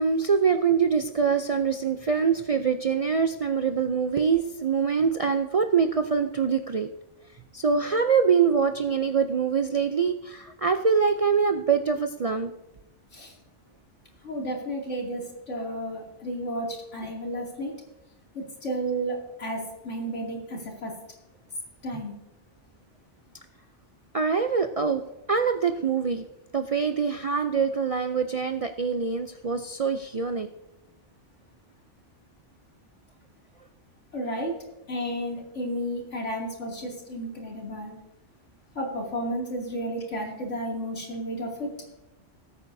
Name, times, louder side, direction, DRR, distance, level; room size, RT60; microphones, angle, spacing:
voice 1, 0.0-6.9 7.5-12.5 21.9-22.0 24.1-25.0 25.3-26.2 26.5-30.5, right 6 dB, 50° right, 7 dB, 0.4 m, -24 dB
voice 2, 14.2-17.7 18.3-20.9 21.8-22.1 34.1-34.5 34.9-38.0 38.8-41.7, right 1 dB, 85° left, -1 dB, 2.9 m, -32 dB
19.0 x 8.7 x 2.7 m, 0.94 s
omnidirectional pair, 1.2 m